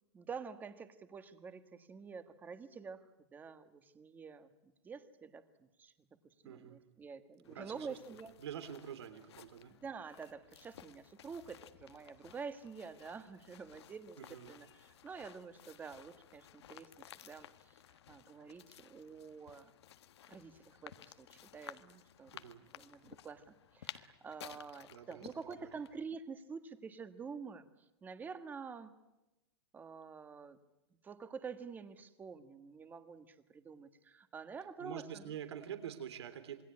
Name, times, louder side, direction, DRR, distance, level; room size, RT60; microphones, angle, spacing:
voice 1, 0.1-3.0 3.3-5.9 6.4-8.3 9.8-14.2 14.5-17.8 18.1-19.7 20.3-22.3 22.7-27.6 28.0-28.9 29.7-30.6 31.0-35.3, right 5 dB, 15° right, 10 dB, 1.5 m, -48 dB
voice 2, 6.4-6.8 7.5-8.0 8.4-9.7 14.2-14.5 22.3-22.6 24.9-25.3 25.6-25.7 34.8-36.6, right 9 dB, 85° right, 10 dB, 3.2 m, -46 dB
sound 1, 7.4-26.0, left 11 dB, 80° left, 1.5 m, -56 dB
27.0 x 21.5 x 9.7 m, 0.96 s
supercardioid pair, 155°, 14 cm